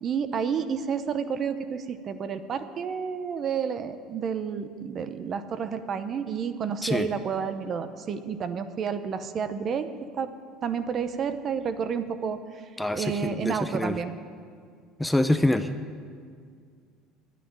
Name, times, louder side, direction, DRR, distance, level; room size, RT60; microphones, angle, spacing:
voice 1, 0.0-9.9 10.1-10.3 10.6-14.1, right 6 dB, 40° right, 10 dB, 0.8 m, -30 dB
voice 2, 12.8-13.9 15.0-15.7, left 1 dB, 5° left, 9 dB, 0.5 m, -25 dB
9.6 x 9.2 x 10.0 m, 2.1 s
cardioid pair, 120°, 0 cm